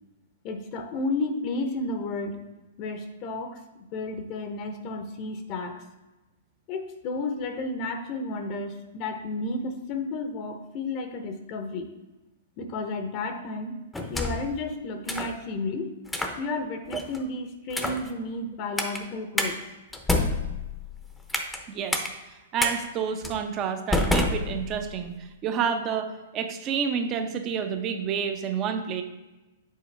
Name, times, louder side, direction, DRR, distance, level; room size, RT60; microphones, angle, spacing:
voice 1, 0.4-2.4 2.8-3.6 3.9-5.8 6.7-11.9 12.6-13.8 14.1-15.9 16.4-19.6, left 2 dB, 40° left, 6 dB, 0.8 m, -32 dB
sound 1, 13.9-14.5 15.1-15.3 16.1-16.4 16.9-17.2 17.7-18.1 18.8-19.0 19.4-19.5 19.9-21.6 21.9-22.1 22.6-22.7 23.2-23.4 23.9-25.0, left 2 dB, 5° left, 0.8 m, -27 dB
voice 2, 21.7-25.2 25.4-29.0, right 7 dB, 30° right, 7 dB, 0.8 m, -29 dB
7.6 x 4.4 x 3.4 m, 1.1 s
figure-of-eight pair, 110°, 0 cm